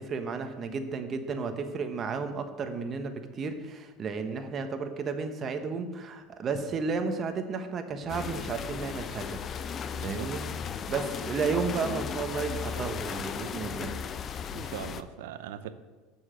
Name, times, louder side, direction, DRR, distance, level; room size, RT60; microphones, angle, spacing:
voice 1, 0.0-9.4 10.0-10.4 10.9-13.9, right 5 dB, 40° right, 7 dB, 1.2 m, -33 dB
sound 1, 8.1-15.0, left 7 dB, 40° left, 0.6 m, -36 dB
voice 2, 9.9-10.3 14.5-15.7, right 10 dB, 80° right, 12 dB, 0.6 m, -40 dB
7.1 x 6.4 x 7.9 m, 1.3 s
supercardioid pair, 100°, 0 cm